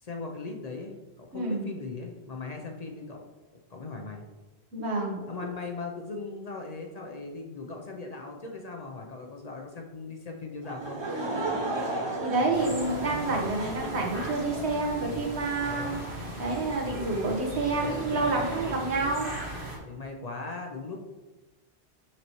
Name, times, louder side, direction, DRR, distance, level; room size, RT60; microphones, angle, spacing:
voice 1, 0.0-3.2 3.7-4.2 5.2-11.0 15.6-16.0 17.6-19.1 19.8-21.0, left 3 dB, 45° left, 1 dB, 0.7 m, -39 dB
voice 2, 1.3-1.7 4.7-5.2 12.2-16.1 16.4-19.3, right 3 dB, 85° right, 0 dB, 1.4 m, -28 dB
Laughter / Crowd, 10.6-14.8, right 2 dB, 25° right, 0.8 m, -34 dB
sound 1, 12.5-19.8, right 1 dB, 55° right, 1.5 m, -38 dB
5.9 x 5.5 x 3.0 m, 1.2 s
omnidirectional pair, 1.1 m